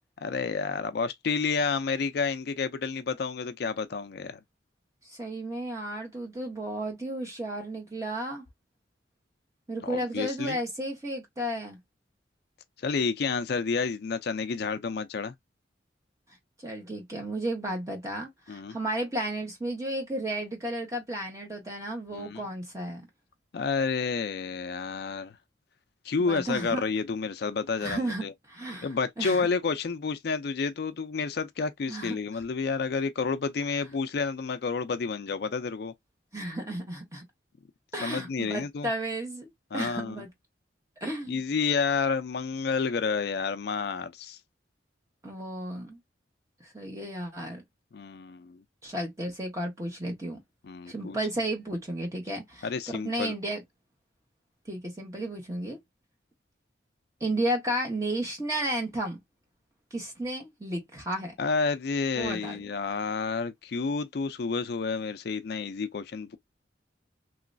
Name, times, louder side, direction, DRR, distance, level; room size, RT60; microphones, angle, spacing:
voice 1, 0.2-4.4 9.8-10.6 12.8-15.3 18.5-18.8 22.1-22.4 23.5-25.3 26.0-28.3 28.8-35.9 38.0-38.9 39.7-40.2 41.3-44.4 47.9-48.6 50.6-51.2 52.6-53.3 61.4-66.4, left 5 dB, 55° left, 0.4 m, -30 dB
voice 2, 5.1-8.4 9.7-11.8 16.6-23.1 26.2-26.8 27.8-28.9 29.2-29.5 31.9-32.2 36.3-37.2 37.9-40.3 41.0-41.4 45.2-46.0 46.7-47.6 48.8-50.4 50.9-52.7 53.0-53.6 54.7-55.8 57.2-59.2 59.9-61.3 62.2-62.6, right 1 dB, 15° right, 1.2 m, -33 dB
3.1 x 3.0 x 2.6 m
head